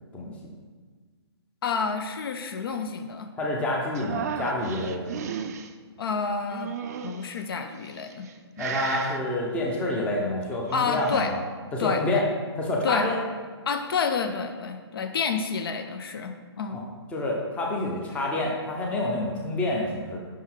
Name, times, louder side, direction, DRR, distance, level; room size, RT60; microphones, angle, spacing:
voice 1, 1.6-3.3 6.0-6.7 7.0-8.3 10.7-11.3 11.8-12.2 12.8-13.1 13.7-16.8, left 5 dB, 55° left, 6 dB, 0.5 m, -29 dB
voice 2, 3.4-5.3 8.6-11.4 11.7-12.2 12.6-13.2 16.7-16.8 17.1-20.2, left 1 dB, 10° left, -2 dB, 0.7 m, -28 dB
sound 1, 3.9-5.7 6.5-7.3 8.0-8.3 8.6-9.2 10.5-11.3, right 7 dB, 35° right, 0.4 m, -34 dB
5.8 x 3.7 x 4.5 m, 1.5 s
hypercardioid pair, 150°, 14 cm